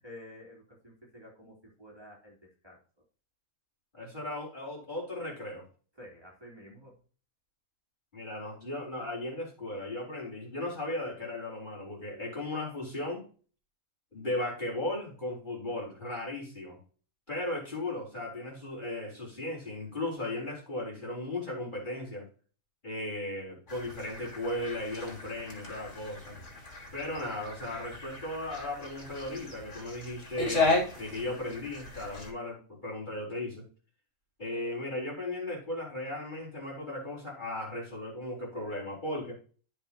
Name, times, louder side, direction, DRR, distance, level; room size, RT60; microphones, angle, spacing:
voice 1, 0.0-2.4 2.6-2.8 5.9-7.0, left 1 dB, 15° right, -5 dB, 3.3 m, -50 dB
voice 2, 3.9-5.6 8.1-13.2 14.1-16.8 17.3-22.2 22.8-26.4 26.9-33.6 34.4-39.4, left 1 dB, 35° left, -4 dB, 4.3 m, -36 dB
sound 1, 23.7-32.3, left 3 dB, 55° left, 3.4 m, -35 dB
14.5 x 5.2 x 2.9 m, 0.39 s
omnidirectional pair, 1.5 m